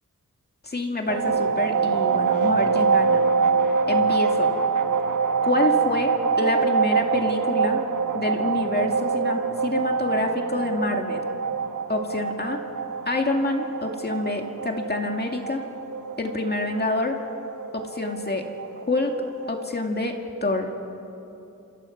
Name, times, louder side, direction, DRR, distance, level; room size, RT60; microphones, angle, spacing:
voice 1, 0.6-3.2 3.9-4.5 5.4-7.8 8.1-11.2 11.9-12.6 13.1-15.6 16.2-17.2 17.7-18.4 18.9-19.1 19.5-20.7, left 2 dB, 30° left, 2 dB, 2.2 m, -27 dB
sound 1, 1.1-19.7, right 5 dB, 90° right, 1.6 m, -25 dB
28.0 x 27.5 x 5.9 m, 2.9 s
wide cardioid pair, 120°, 31 cm